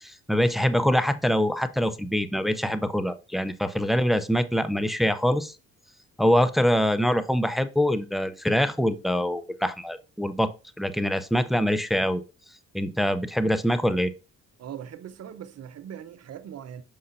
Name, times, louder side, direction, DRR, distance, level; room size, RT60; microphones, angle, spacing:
voice 1, 0.0-5.5 6.2-10.5 10.8-12.2 12.7-14.1, equal, ahead, 0.6 m, -24 dB
voice 2, 14.6-16.8, right 9 dB, 55° right, 0.8 m, -40 dB
6.5 x 5.6 x 2.6 m
cardioid pair, 90°, 30 cm